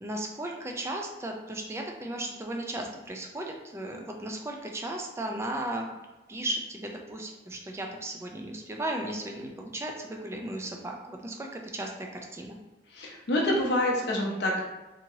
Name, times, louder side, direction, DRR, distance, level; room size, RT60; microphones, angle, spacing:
voice 1, 0.0-5.9 6.3-12.6, right 1 dB, 15° right, 1 dB, 0.3 m, -35 dB
voice 2, 12.9-14.6, left 1 dB, 70° left, -1 dB, 0.6 m, -27 dB
2.8 x 2.7 x 2.6 m, 1.1 s
head